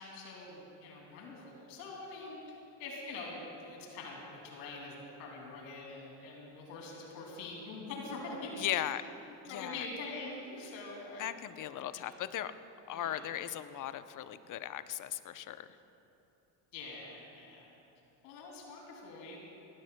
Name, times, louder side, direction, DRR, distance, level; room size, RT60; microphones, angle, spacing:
voice 1, 0.0-8.8 9.3-11.3 12.0-12.1 12.9-13.3 16.7-17.7 18.2-19.4, left 3 dB, 85° left, -1 dB, 2.7 m, -45 dB
voice 2, 8.6-9.0 9.4-9.9 11.2-12.5 12.9-15.8, left 11 dB, 40° left, 12 dB, 0.7 m, -37 dB
19.5 x 17.5 x 2.2 m, 2.9 s
supercardioid pair, 85°, 49 cm